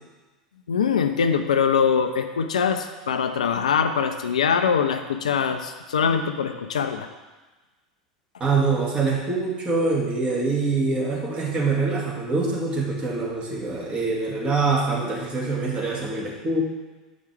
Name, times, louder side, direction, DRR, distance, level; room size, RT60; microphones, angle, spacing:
voice 1, 0.7-7.1, left 6 dB, 75° left, 8 dB, 0.5 m, -23 dB
voice 2, 8.4-16.6, right 3 dB, 25° right, -3 dB, 1.8 m, -24 dB
8.0 x 4.9 x 3.3 m, 1.2 s
figure-of-eight pair, 85°, 4 cm